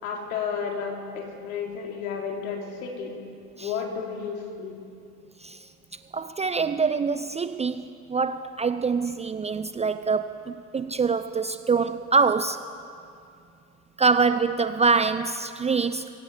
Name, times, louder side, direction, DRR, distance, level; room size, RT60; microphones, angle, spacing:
voice 1, 0.0-3.2 3.6-4.8, left 6 dB, 65° left, 1 dB, 4.0 m, -32 dB
voice 2, 6.1-12.6 14.0-16.2, right 5 dB, 15° right, 12 dB, 0.6 m, -25 dB
22.0 x 17.5 x 8.1 m, 2.4 s
figure-of-eight pair, 75°, 45 cm